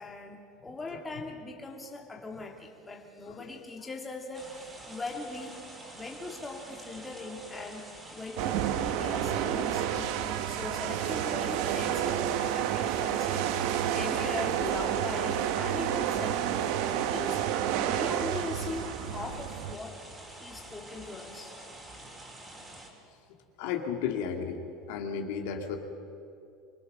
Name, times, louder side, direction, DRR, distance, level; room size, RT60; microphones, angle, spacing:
voice 1, 0.0-5.6 5.9-7.9 8.1-13.5 13.9-16.7 17.1-17.5 17.8-20.0 20.4-22.5, left 3 dB, 10° left, 1 dB, 2.1 m, -40 dB
sound 1, 4.3-22.9, right 1 dB, 20° right, 3.4 m, -47 dB
sound 2, 8.4-19.8, right 10 dB, 65° right, 1.1 m, -30 dB
voice 2, 23.6-24.6 24.9-25.8, left 7 dB, 75° left, 4 dB, 2.4 m, -34 dB
25.5 x 20.0 x 6.6 m, 2.6 s
cardioid pair, 155°, 0 cm